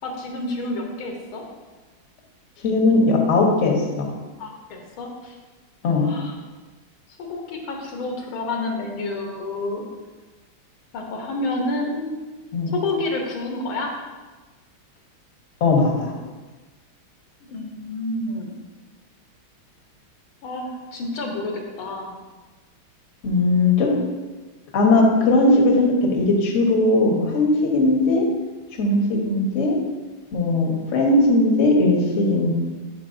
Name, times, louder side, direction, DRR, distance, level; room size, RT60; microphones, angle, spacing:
voice 1, 0.0-1.4 4.4-5.3 6.0-6.4 7.2-9.9 10.9-12.1 12.7-13.9 17.4-18.5 20.4-22.2, left 2 dB, 80° left, 1 dB, 1.8 m, -29 dB
voice 2, 2.6-4.1 5.8-6.1 12.5-12.7 15.6-16.1 23.2-23.9 24.7-28.2 28.8-29.8 30.3-32.5, left 2 dB, 45° left, 0 dB, 1.1 m, -18 dB
10.5 x 4.6 x 2.6 m, 1.3 s
omnidirectional pair, 2.3 m